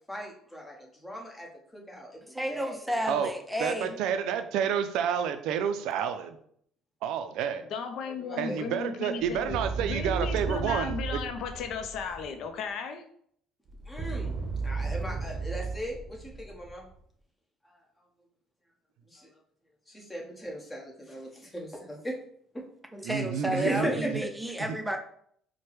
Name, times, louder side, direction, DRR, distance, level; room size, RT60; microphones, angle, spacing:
voice 1, 0.1-3.1 8.0-8.6 13.9-14.4 14.6-16.9 17.6-17.8 19.1-19.4 19.9-22.2 22.5-22.6 23.0-24.1, equal, 15° left, -1 dB, 1.1 m, -38 dB
voice 2, 2.3-4.0 22.9-25.0, right 1 dB, 5° right, 4 dB, 0.6 m, -32 dB
voice 3, 3.6-6.4 7.0-7.7 8.4-11.2 23.0-24.1, right 8 dB, 75° right, 9 dB, 0.3 m, -30 dB
voice 4, 7.7-9.6 9.9-13.0, left 5 dB, 65° left, 6 dB, 0.5 m, -35 dB
sound 1, 9.2-12.4 13.7-16.9, right 4 dB, 25° right, 0.9 m, -35 dB
4.3 x 2.1 x 3.2 m, 0.64 s
supercardioid pair, 80°, 0 cm